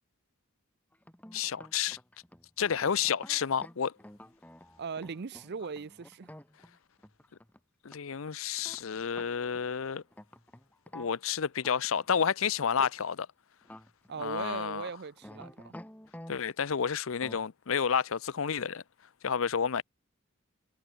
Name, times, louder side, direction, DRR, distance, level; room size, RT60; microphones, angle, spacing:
sound 1, 0.9-7.6 7.9-8.0 8.3-8.4 8.6-9.6 10.1-11.2 11.6-12.4 12.8-12.9 13.6-14.1 14.4-14.5 15.2-16.4 17.1-17.5, left 1 dB, 5° left, 1.8 m, -50 dB
voice 1, 1.3-2.0 2.6-3.9 7.8-10.0 10.9-13.3 14.2-14.9 16.3-18.8 19.2-19.8, left 7 dB, 65° left, 0.6 m, -30 dB
voice 2, 4.8-6.3 14.1-15.7, right 5 dB, 50° right, 0.5 m, -39 dB
head